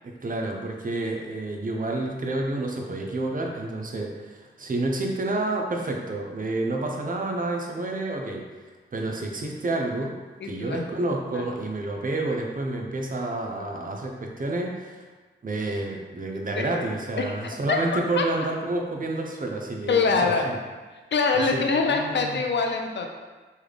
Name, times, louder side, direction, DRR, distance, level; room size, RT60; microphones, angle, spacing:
voice 1, 0.0-10.2 10.4-15.1 15.4-20.6 21.3-22.4, right 2 dB, 40° right, 1 dB, 0.6 m, -29 dB
voice 2, 10.4-10.8 11.3-11.5 16.6-17.4 17.7-18.2 19.9-20.5 21.1-23.1, left 4 dB, 60° left, 3 dB, 0.5 m, -25 dB
3.4 x 2.3 x 3.3 m, 1.3 s
cardioid pair, 45°, 21 cm